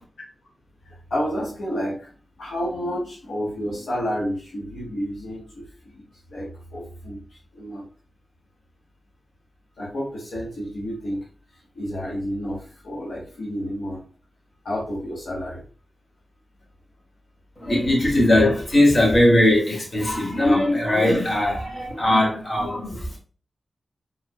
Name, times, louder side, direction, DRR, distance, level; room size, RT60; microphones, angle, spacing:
voice 1, 0.9-2.1 2.4-6.0 6.3-7.2 7.5-7.9 9.8-11.3 11.7-14.0 14.6-15.6 20.4-20.5, equal, 80° left, 1.5 m, -30 dB
voice 2, 17.6-23.2, left 1 dB, 50° left, 2.0 m, -19 dB
4.6 x 3.8 x 2.5 m
cardioid pair, 40°, 0 cm